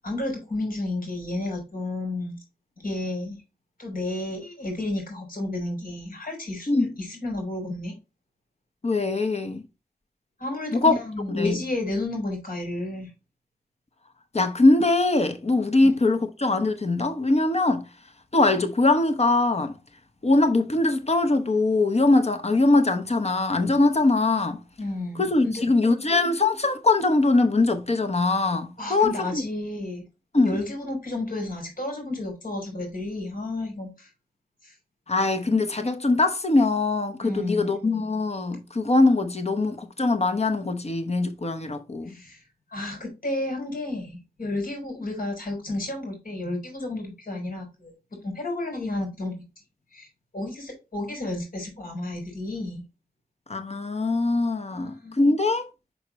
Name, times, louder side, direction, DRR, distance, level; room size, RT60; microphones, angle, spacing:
voice 1, 0.0-2.4 2.8-3.4 3.8-8.0 10.4-13.1 15.8-15.9 24.8-25.7 28.8-30.1 30.4-34.1 34.6-34.7 37.2-37.8 42.1-42.4 42.7-47.9 48.2-49.4 49.9-50.1 50.3-52.8 54.7-55.2, left 2 dB, 65° left, 4.0 m, -31 dB
voice 2, 8.8-9.6 10.7-10.9 11.3-11.6 14.3-17.8 18.3-19.8 20.2-24.6 25.2-29.4 30.3-30.6 35.1-42.2 53.5-55.7, left 2 dB, 45° left, 0.9 m, -22 dB
5.9 x 5.7 x 3.0 m
wide cardioid pair, 60°, 15 cm